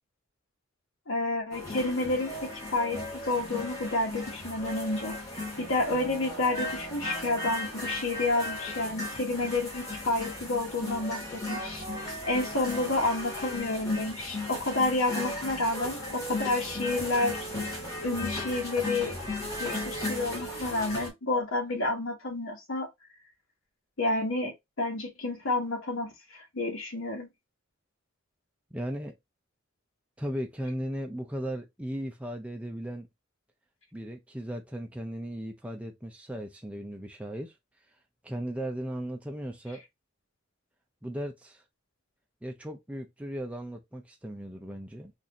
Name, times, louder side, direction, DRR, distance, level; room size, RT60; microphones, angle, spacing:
voice 1, 1.1-17.7 18.0-19.1 19.6-22.9 24.0-27.3, left 2 dB, 80° left, 1.1 m, -30 dB
sound 1, 1.5-21.1, left 1 dB, 15° left, 1.9 m, -36 dB
voice 2, 28.7-29.2 30.2-33.1 33.9-37.5 38.2-39.8 41.0-41.6 42.4-45.1, equal, 5° right, 0.5 m, -36 dB
4.0 x 2.5 x 2.9 m
head